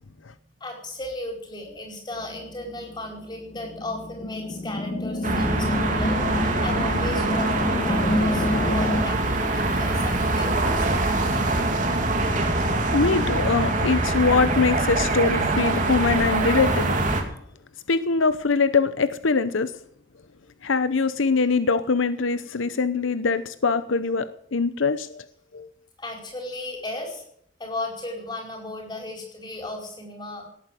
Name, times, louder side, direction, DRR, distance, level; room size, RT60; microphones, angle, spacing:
voice 1, 0.6-11.4 26.0-27.2 27.6-30.5, left 2 dB, 20° left, 1 dB, 5.0 m, -35 dB
sound 1, 2.1-9.0, left 1 dB, 40° left, 1.2 m, -28 dB
sound 2, 5.2-17.2, right 2 dB, 40° right, 2.7 m, -24 dB
voice 2, 12.4-17.0 17.9-19.7 20.6-25.2 25.5-25.7, left 4 dB, 80° left, 13 dB, 0.8 m, -23 dB
18.0 x 9.1 x 7.6 m, 0.67 s
head